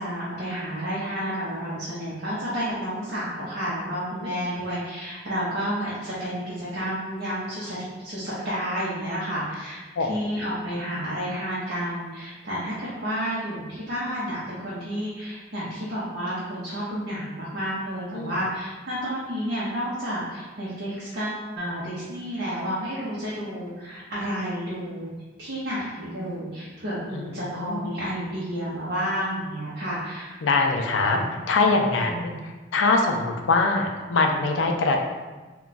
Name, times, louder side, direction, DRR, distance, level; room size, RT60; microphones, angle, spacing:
voice 1, 0.0-9.8 10.1-25.1 25.4-30.4 31.1-31.2 32.1-32.3, equal, 60° right, -9 dB, 0.7 m, -31 dB
voice 2, 27.1-27.9 30.4-31.2 31.5-35.0, left 3 dB, 90° left, 3 dB, 0.4 m, -23 dB
2.2 x 2.2 x 3.8 m, 1.3 s
head